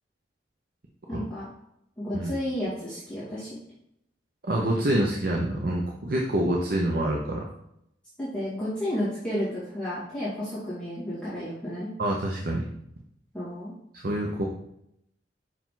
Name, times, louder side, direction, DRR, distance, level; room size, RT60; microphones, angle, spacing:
voice 1, 1.1-1.5 2.0-3.6 8.2-11.9 13.3-13.7, equal, 5° left, -12 dB, 2.2 m, -32 dB
voice 2, 4.4-7.4 12.0-12.7 13.9-14.5, right 1 dB, 55° right, -1 dB, 0.8 m, -26 dB
5.7 x 4.9 x 3.8 m, 0.78 s
head